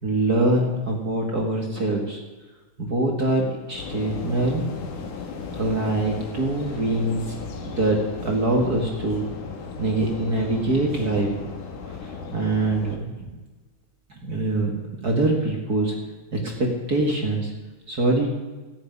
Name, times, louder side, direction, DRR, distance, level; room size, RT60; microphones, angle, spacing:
voice 1, 0.0-2.2 2.8-4.6 5.5-7.2 7.7-9.3 9.8-11.3 12.0-13.3 14.1-14.7 15.0-15.9 16.3-17.5 17.9-18.3, right 2 dB, 45° right, 0 dB, 1.2 m, -24 dB
sound 1, 3.7-13.0, left 4 dB, 60° left, 2.8 m, -36 dB
14.0 x 8.7 x 9.5 m, 1.3 s
omnidirectional pair, 4.8 m